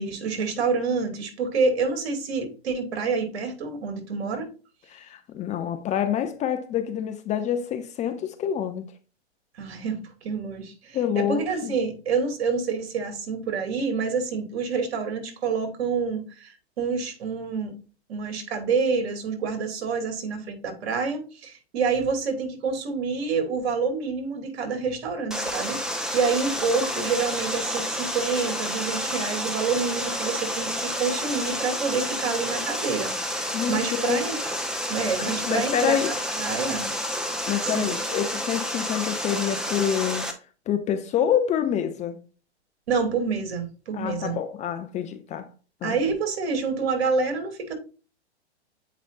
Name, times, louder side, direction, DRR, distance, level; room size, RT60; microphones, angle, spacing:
voice 1, 0.0-4.5 9.6-17.7 18.1-34.4 34.9-36.9 37.6-37.9 42.9-44.4 45.8-47.7, right 5 dB, 65° right, 2.6 m, -27 dB
voice 2, 4.9-8.9 10.9-11.7 33.5-34.2 35.2-36.1 37.5-40.3 40.7-42.2 43.9-45.5 45.8-46.0, left 9 dB, 20° left, 0.6 m, -27 dB
Water, 25.3-40.3, equal, ahead, 1.0 m, -30 dB
7.9 x 5.0 x 2.5 m
hypercardioid pair, 125°, 34 cm